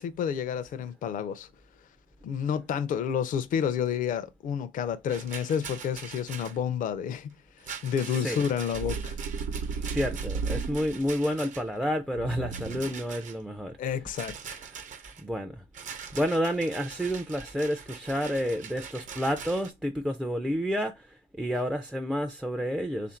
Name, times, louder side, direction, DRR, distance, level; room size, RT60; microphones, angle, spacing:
voice 1, 0.0-1.5 2.2-7.3 7.8-9.1 13.8-14.6, left 8 dB, 50° left, 0.5 m, -30 dB
Rattle, 5.1-6.6 7.6-11.8 12.5-13.4 14.1-15.2 15.7-19.7, right 7 dB, 50° right, 0.7 m, -43 dB
sound 1, 8.7-11.2 12.1-13.1, right 5 dB, 80° right, 0.8 m, -34 dB
voice 2, 9.8-13.7 15.2-15.6 16.1-20.9 21.4-23.2, equal, 5° right, 0.4 m, -29 dB
3.4 x 2.5 x 4.3 m
cardioid pair, 110°, 17 cm